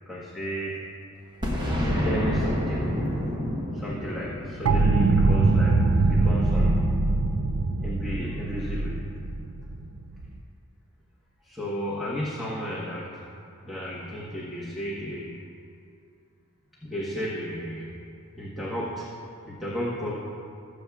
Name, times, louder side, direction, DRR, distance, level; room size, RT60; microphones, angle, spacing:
voice 1, 0.1-0.8 1.7-2.8 3.7-6.8 7.8-8.9 11.4-13.1 13.6-15.3 16.8-17.9 18.4-19.0 19.4-20.1, equal, ahead, -7 dB, 1.2 m, -33 dB
Boom, 1.4-6.1, equal, 20° right, 1.0 m, -29 dB
sound 1, 4.7-10.3, right 3 dB, 65° right, 0.5 m, -22 dB
19.0 x 8.1 x 2.4 m, 2.5 s
head